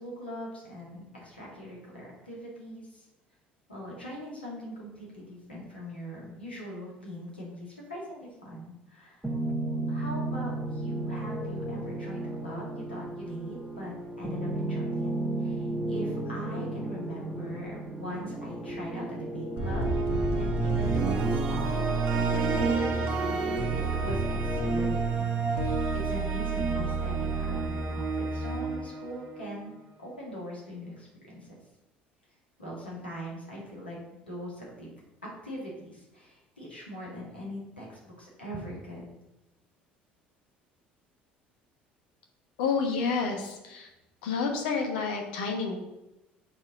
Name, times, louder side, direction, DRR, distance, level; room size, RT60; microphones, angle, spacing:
voice 1, 0.0-3.1 3.7-9.3 9.9-15.1 15.4-19.8 20.2-29.7 30.0-31.5 32.6-34.9 35.2-39.0, equal, 85° left, -4 dB, 1.9 m, -41 dB
sound 1, 9.2-24.9, right 1 dB, 5° right, 1.1 m, -34 dB
sound 2, 19.6-29.7, right 4 dB, 50° right, 1.5 m, -29 dB
voice 2, 42.6-43.9 44.2-45.8, left 5 dB, 65° left, 2 dB, 1.2 m, -29 dB
6.5 x 4.4 x 4.8 m, 0.96 s
figure-of-eight pair, 60°, 5 cm